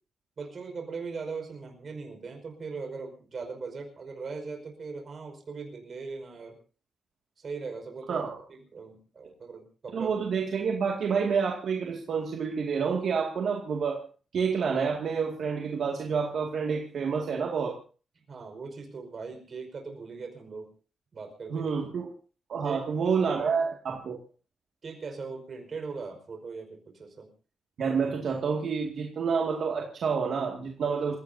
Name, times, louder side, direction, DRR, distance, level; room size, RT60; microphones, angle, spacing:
voice 1, 0.4-6.6 7.4-8.2 8.5-10.2 18.3-20.7 21.1-21.7 22.6-23.3 24.8-27.3, right 4 dB, 45° right, 3 dB, 5.1 m, -39 dB
voice 2, 8.1-8.4 9.9-14.0 14.3-17.7 21.5-22.1 22.5-24.2 27.8-31.2, right 6 dB, 70° right, 0 dB, 2.2 m, -28 dB
28.0 x 16.5 x 2.8 m, 0.38 s
wide cardioid pair, 135°, 0 cm